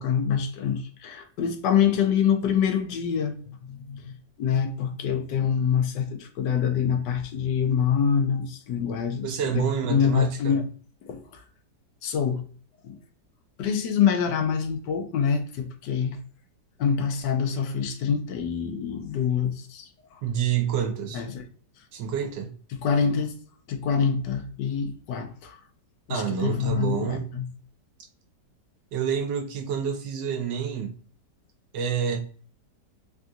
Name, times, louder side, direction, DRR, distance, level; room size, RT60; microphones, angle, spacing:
voice 1, 0.0-4.1 4.4-9.3 9.5-10.6 11.0-11.4 12.0-12.4 12.8-13.0 13.6-16.2 16.8-20.2 21.1-21.4 22.8-23.3 23.7-25.6 26.1-27.5, left 7 dB, 80° left, 1.2 m, -25 dB
voice 2, 9.2-10.6 20.2-21.2 21.9-22.5 26.1-27.3 28.9-30.9 31.7-32.2, right 8 dB, 90° right, 1.4 m, -28 dB
3.4 x 2.6 x 2.4 m
omnidirectional pair, 1.9 m